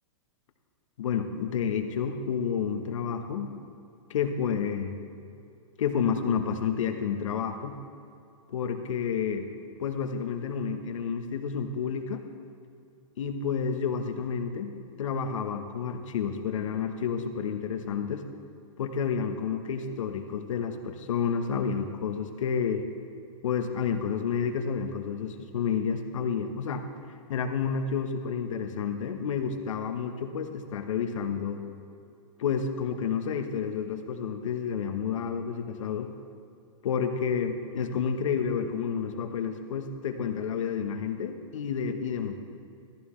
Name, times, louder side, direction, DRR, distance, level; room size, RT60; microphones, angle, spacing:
voice 1, 1.0-3.5 4.1-4.9 5.8-7.8 8.5-9.5 9.8-12.3 13.2-14.7 15.0-18.2 18.8-22.8 23.4-26.9 27.3-31.6 32.4-36.1 36.8-42.4, left 6 dB, 75° left, 6 dB, 1.2 m, -30 dB
14.5 x 14.0 x 3.2 m, 2.6 s
hypercardioid pair, 130°, 17 cm